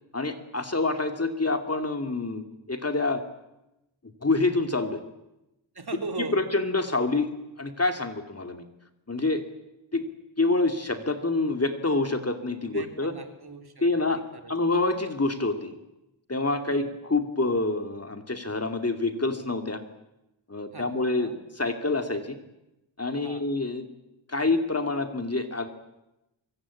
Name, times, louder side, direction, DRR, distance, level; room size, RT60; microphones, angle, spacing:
voice 1, 0.1-3.2 4.2-5.0 6.3-7.3 7.6-8.6 9.1-9.4 9.9-10.1 10.4-13.1 13.8-15.7 16.3-19.8 20.5-22.4 23.0-23.9 24.3-25.7, left 3 dB, 30° left, 6 dB, 2.6 m, -27 dB
voice 2, 5.7-6.4 12.6-13.8 14.3-14.5 16.7-16.9 20.7-21.4 23.2-23.4, right 3 dB, 50° right, 5 dB, 3.3 m, -39 dB
24.0 x 24.0 x 8.5 m, 0.92 s
wide cardioid pair, 100°, 48 cm